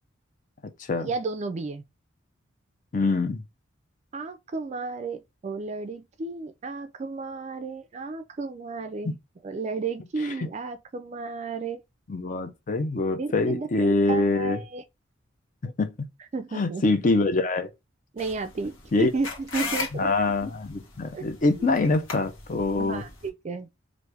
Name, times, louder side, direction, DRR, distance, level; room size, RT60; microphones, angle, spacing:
voice 1, 1.0-1.8 4.1-9.2 9.4-11.8 13.2-14.8 16.3-16.8 18.1-20.1 21.1-21.2 21.6-21.7 22.8-23.7, right 3 dB, 35° right, 0.3 m, -33 dB
voice 2, 2.9-3.4 9.0-9.1 12.1-14.6 15.6-16.0 16.5-17.7 18.9-19.1 19.9-23.0, left 3 dB, 40° left, 0.5 m, -24 dB
sound 1, 18.2-23.3, left 4 dB, 90° left, 1.2 m, -37 dB
3.2 x 2.5 x 3.4 m
head